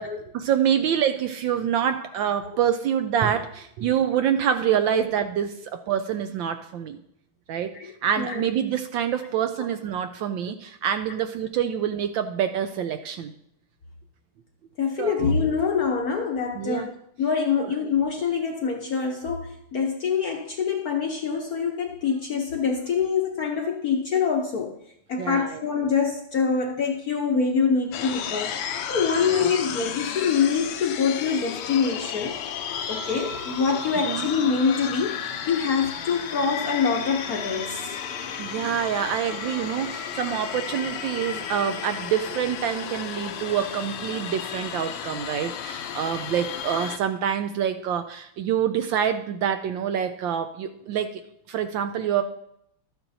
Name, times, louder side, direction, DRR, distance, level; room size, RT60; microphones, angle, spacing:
voice 1, 0.3-7.0 7.5-13.3 15.0-15.3 16.6-16.9 17.6-17.7 25.2-25.6 29.2-29.5 34.1-34.3 38.4-51.2 51.5-52.2, right 9 dB, 75° right, 8 dB, 1.1 m, -26 dB
voice 2, 7.7-8.5 9.6-9.7 14.8-16.9 17.2-24.8 25.1-32.4 32.9-37.8, left 6 dB, 60° left, 2 dB, 1.0 m, -25 dB
sound 1, 27.9-47.0, left 9 dB, 80° left, 1.6 m, -33 dB
sound 2, 32.7-42.3, right 5 dB, 55° right, 2.5 m, -45 dB
12.5 x 8.8 x 2.7 m, 0.74 s
omnidirectional pair, 2.4 m